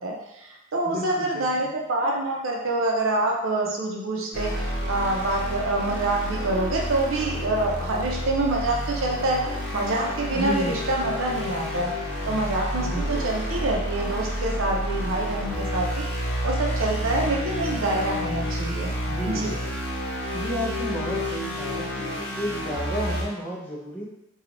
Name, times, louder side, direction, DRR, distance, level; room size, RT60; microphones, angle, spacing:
voice 1, 0.0-9.4 9.7-11.9 12.3-16.0 16.4-18.9 19.3-19.5, right 2 dB, 90° right, 0 dB, 0.6 m, -26 dB
voice 2, 0.9-1.7 10.3-10.9 12.9-13.2 19.1-19.7 20.3-24.0, equal, 10° left, -5 dB, 0.6 m, -32 dB
sound 1, 4.3-23.2, equal, 55° left, 0.8 m, -30 dB
3.1 x 2.3 x 3.8 m, 0.91 s
head